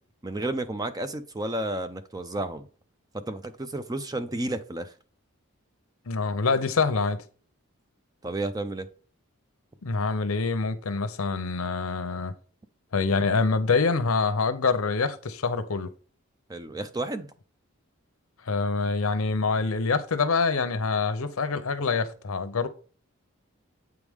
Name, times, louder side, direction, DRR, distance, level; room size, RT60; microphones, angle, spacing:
voice 1, 0.2-2.7 3.1-4.9 8.2-8.9 16.5-17.3, right 2 dB, 15° right, 0.4 m, -32 dB
voice 2, 6.1-7.2 9.8-12.3 12.9-15.9 18.5-22.7, left 4 dB, 75° left, 0.7 m, -25 dB
7.9 x 4.8 x 3.6 m
head